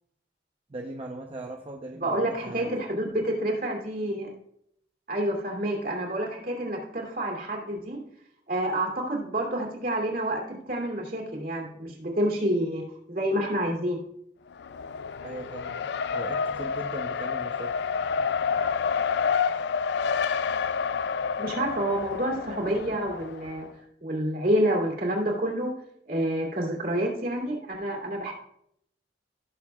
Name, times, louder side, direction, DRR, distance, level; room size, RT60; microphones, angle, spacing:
voice 1, 0.7-2.7 15.2-15.8 16.1-17.7, right 2 dB, 35° right, 1 dB, 0.7 m, -39 dB
voice 2, 2.0-4.3 5.1-8.0 8.5-14.0 21.4-23.7 24.0-25.7 26.1-28.3, right 1 dB, 55° right, 0 dB, 2.6 m, -28 dB
Race car auto racing, 14.5-23.6, left 6 dB, 70° left, 0.4 m, -29 dB
16.5 x 6.8 x 2.3 m, 0.73 s
head